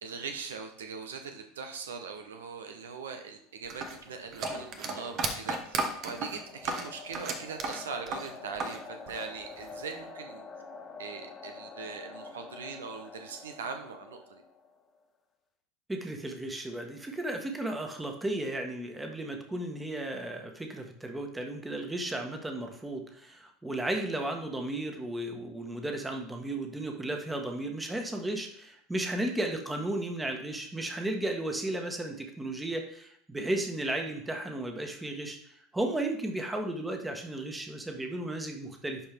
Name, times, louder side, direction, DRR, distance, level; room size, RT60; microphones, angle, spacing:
voice 1, 0.0-5.8 6.0-10.4 11.0-14.4, right 5 dB, 75° right, 6 dB, 1.0 m, -41 dB
sound 1, 3.7-8.8 9.1-9.9, right 3 dB, 45° right, 1.3 m, -34 dB
sound 2, 4.0-14.9, left 4 dB, 25° left, 1.4 m, -47 dB
voice 2, 15.9-35.4 35.7-39.0, right 1 dB, 10° right, 3 dB, 1.5 m, -34 dB
11.5 x 4.7 x 3.6 m, 0.68 s
figure-of-eight pair, 75°, 0 cm